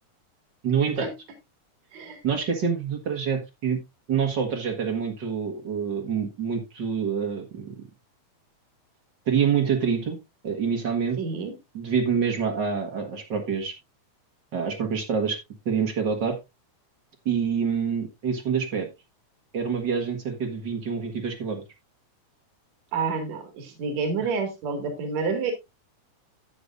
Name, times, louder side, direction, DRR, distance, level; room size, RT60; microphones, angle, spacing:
voice 1, 0.6-1.1 2.2-3.8 4.1-7.8 9.3-10.2 10.4-11.2 11.7-13.7 14.5-15.4 15.7-16.4 17.3-18.9 19.5-21.6, right 6 dB, 45° right, 5 dB, 1.9 m, -26 dB
voice 2, 11.2-11.5 22.9-25.5, right 5 dB, 65° right, 6 dB, 3.3 m, -29 dB
12.0 x 9.2 x 2.5 m, 0.23 s
omnidirectional pair, 3.5 m